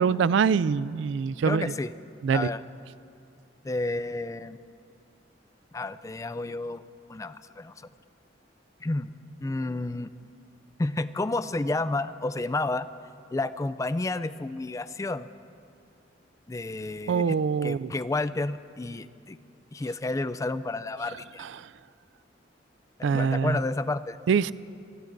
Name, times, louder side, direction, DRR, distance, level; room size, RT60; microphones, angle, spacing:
voice 1, 0.0-1.7 2.2-2.5 17.1-17.9 21.4-21.7 23.0-23.6 24.3-24.5, right 6 dB, 75° right, 19 dB, 0.3 m, -24 dB
voice 2, 1.4-1.9 2.3-2.6 3.6-4.6 5.7-6.8 7.1-7.9 8.8-9.1 9.4-10.1 10.8-12.9 13.3-15.3 16.5-17.4 17.6-19.4 19.7-21.5 23.0-24.2, left 2 dB, 15° left, 14 dB, 0.3 m, -31 dB
26.5 x 18.0 x 2.6 m, 2.4 s
head